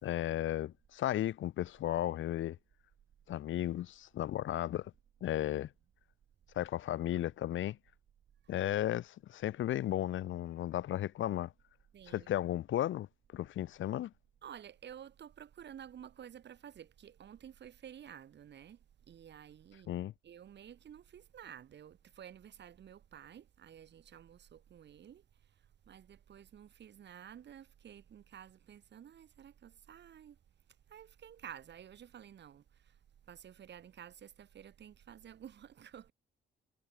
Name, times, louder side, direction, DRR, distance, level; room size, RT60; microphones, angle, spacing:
voice 1, 0.0-2.6 3.3-4.9 5.2-5.7 6.5-7.8 8.5-11.5 12.1-13.1 13.3-14.1 19.9-20.1, left 12 dB, 75° left, 2.9 m, -34 dB
voice 2, 11.9-12.3 14.4-18.8 19.1-19.9 20.2-25.2 25.9-30.4 30.9-32.6 33.3-36.1, right 9 dB, 60° right, 5.9 m, -52 dB
cardioid pair, 90°, 20 cm